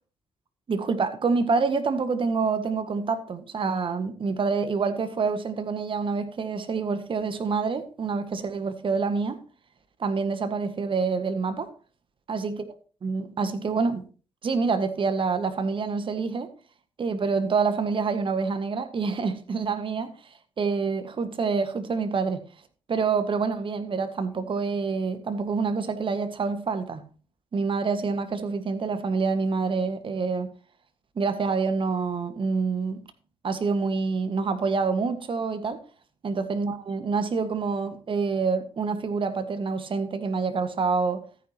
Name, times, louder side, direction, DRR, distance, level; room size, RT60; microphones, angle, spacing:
voice 1, 0.7-9.4 10.0-11.7 12.3-12.6 13.0-14.0 14.4-16.5 17.0-20.1 20.6-22.4 22.9-27.0 27.5-30.5 31.2-33.0 33.4-35.8 36.2-41.2, right 4 dB, 45° right, 1.7 m, -27 dB
13.5 x 9.9 x 3.0 m
hypercardioid pair, 45°, 12 cm